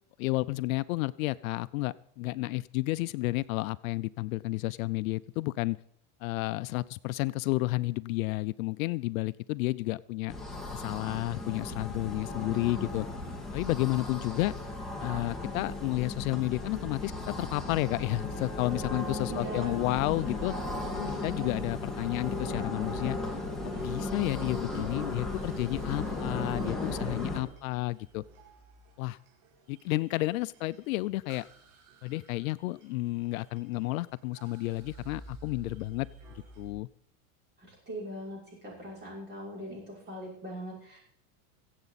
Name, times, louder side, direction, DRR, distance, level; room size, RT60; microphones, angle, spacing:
voice 1, 0.2-5.8 6.2-10.3 10.7-13.1 13.5-14.5 15.0-20.5 20.9-23.2 23.6-28.2 29.0-29.2 29.7-31.5 32.0-36.1 36.6-36.9, left 20 dB, 75° left, 17 dB, 0.5 m, -31 dB
sound 1, 10.3-27.4, left 2 dB, ahead, 1.9 m, -36 dB
voice 2, 19.2-19.9 37.6-41.0, right 1 dB, 25° right, -4 dB, 6.0 m, -41 dB
sound 2, 20.1-36.7, right 2 dB, 85° right, 5.4 m, -56 dB
23.0 x 8.0 x 4.1 m, 0.65 s
supercardioid pair, 145°, 42 cm